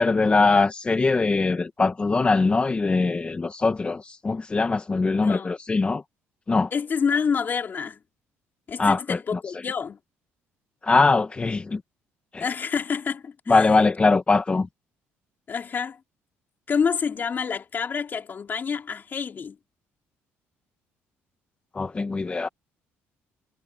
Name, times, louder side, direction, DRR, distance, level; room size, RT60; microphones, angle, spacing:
voice 1, 0.0-6.0 6.5-6.7 8.8-9.2 9.5-9.7 10.8-11.8 12.3-12.5 13.5-14.7 21.7-22.5, left 3 dB, 25° left, 1.7 m, -22 dB
voice 2, 5.0-5.5 6.7-8.0 8.7-10.0 12.4-13.6 15.5-16.0 16.7-19.6, left 6 dB, 40° left, 3.6 m, -28 dB
cardioid pair, 90°, 5 cm